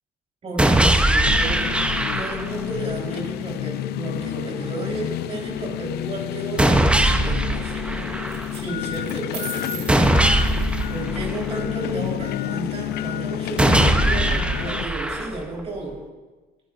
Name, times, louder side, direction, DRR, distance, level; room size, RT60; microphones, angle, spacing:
voice 1, 0.4-1.8 2.1-6.9 7.1-8.2 8.5-9.9 10.9-16.0, right 2 dB, 35° right, -1 dB, 4.0 m, -33 dB
sound 1, 0.6-2.6 6.6-8.6 9.9-11.9 13.6-15.6, right 1 dB, 5° right, 0.7 m, -20 dB
sound 2, 1.2-14.9, left 12 dB, 75° left, 0.5 m, -30 dB
sound 3, 5.4-5.9 8.3-8.6 8.9-11.0, right 7 dB, 85° right, 2.4 m, -39 dB
24.5 x 10.0 x 2.5 m, 1.3 s
cardioid pair, 110°, 17 cm